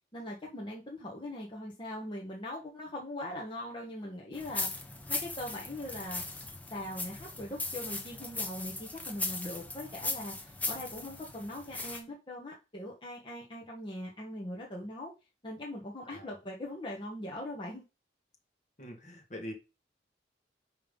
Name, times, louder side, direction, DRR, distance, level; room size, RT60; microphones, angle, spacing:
voice 1, 0.1-4.7 5.1-6.2 6.7-15.1 15.4-17.8, left 1 dB, 30° left, -3 dB, 1.5 m, -41 dB
sound 1, 4.3-12.0, left 2 dB, 10° left, 1.1 m, -38 dB
voice 2, 18.8-19.5, equal, 45° left, 3 dB, 1.9 m, -43 dB
5.6 x 5.4 x 5.4 m, 0.28 s
head